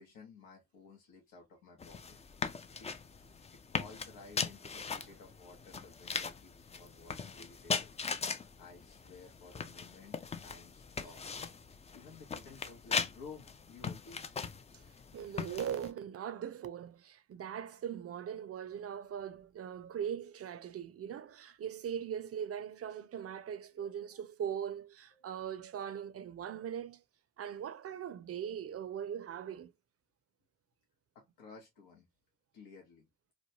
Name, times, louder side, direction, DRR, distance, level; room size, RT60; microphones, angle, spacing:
voice 1, 0.0-2.2 2.8-3.4 3.7-7.9 8.2-11.2 11.7-14.3 23.8-24.2 25.1-25.4 31.1-32.1 32.5-33.1, left 4 dB, 75° left, 0.9 m, -55 dB
sound 1, 1.8-15.9, left 5 dB, 20° left, 0.4 m, -40 dB
voice 2, 15.1-27.0 27.4-29.7, right 9 dB, 40° right, 0.5 m, -40 dB
3.0 x 2.2 x 2.7 m
hypercardioid pair, 50°, 35 cm